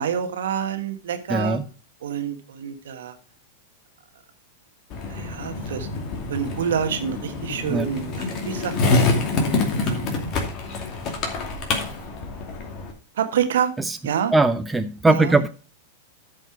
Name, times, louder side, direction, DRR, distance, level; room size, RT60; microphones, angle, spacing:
voice 1, 0.0-1.6 2.0-3.1 5.1-5.9 6.3-9.1 9.8-10.2 12.0-12.1 13.1-13.7 14.0-14.3 15.0-15.4, right 8 dB, 65° right, 8 dB, 1.5 m, -27 dB
voice 2, 1.3-1.6 7.7-7.9 13.9-14.0 14.3-15.5, right 2 dB, 10° right, 9 dB, 0.6 m, -20 dB
Skateboard, 4.9-12.9, left 3 dB, 35° left, 2.5 m, -26 dB
13.0 x 5.3 x 4.8 m, 0.35 s
figure-of-eight pair, 95°, 0 cm